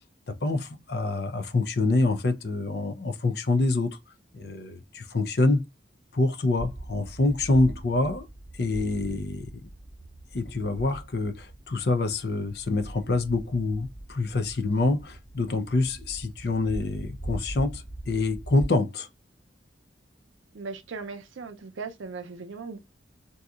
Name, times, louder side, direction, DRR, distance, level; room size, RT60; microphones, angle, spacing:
voice 1, 0.3-4.0 4.3-5.6 6.1-8.3 8.5-9.5 10.3-19.1, left 2 dB, 55° left, 0.5 m, -26 dB
sound 1, 6.5-18.7, right 1 dB, ahead, 2.3 m, -41 dB
voice 2, 20.5-22.8, right 4 dB, 85° right, 0.5 m, -38 dB
3.7 x 2.7 x 2.3 m
head